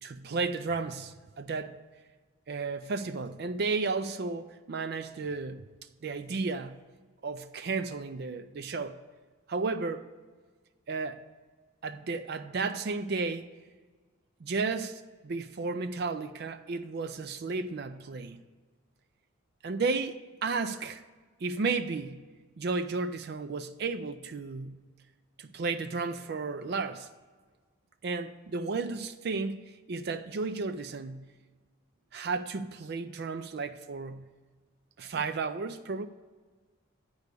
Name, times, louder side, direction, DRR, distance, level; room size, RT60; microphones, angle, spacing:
voice 1, 0.0-1.8 2.5-5.6 6.0-6.8 7.2-9.0 9.5-10.1 10.9-11.2 11.8-13.5 14.4-18.4 19.6-21.0 21.4-22.2 22.6-24.8 25.4-27.1 28.0-31.3 32.1-34.3 35.0-36.1, right 4 dB, 50° right, 0.4 m, -33 dB
9.5 x 4.8 x 6.6 m
head